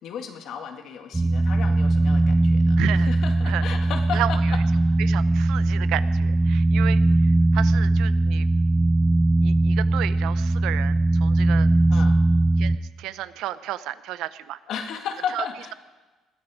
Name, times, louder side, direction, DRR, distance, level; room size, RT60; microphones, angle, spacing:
voice 1, 0.0-4.6 11.9-12.2 14.7-15.7, left 7 dB, 65° left, 4 dB, 1.9 m, -34 dB
sound 1, 1.1-12.8, right 2 dB, 10° right, 0.5 m, -20 dB
voice 2, 2.8-3.1 3.4-3.6 4.1-4.3 5.0-8.5 9.4-11.0 11.2-11.7 12.6-14.6 15.3-15.4, right 13 dB, 85° right, 14 dB, 0.7 m, -32 dB
20.5 x 13.0 x 5.0 m, 1.2 s
cardioid pair, 145°, 0 cm